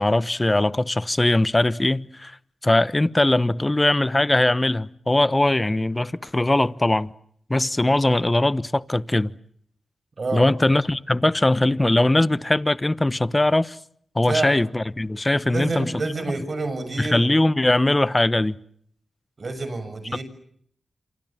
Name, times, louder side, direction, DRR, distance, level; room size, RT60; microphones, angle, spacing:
voice 1, 0.0-2.4 2.6-7.1 7.5-9.3 10.3-13.8 14.1-16.0 17.0-18.6 20.1-20.2, left 2 dB, 25° left, 1.2 m, -20 dB
voice 2, 10.2-10.5 14.3-14.5 15.4-17.2 19.4-20.2, right 3 dB, 55° right, 6.6 m, -28 dB
28.0 x 25.5 x 7.4 m
cardioid pair, 40°, 0 cm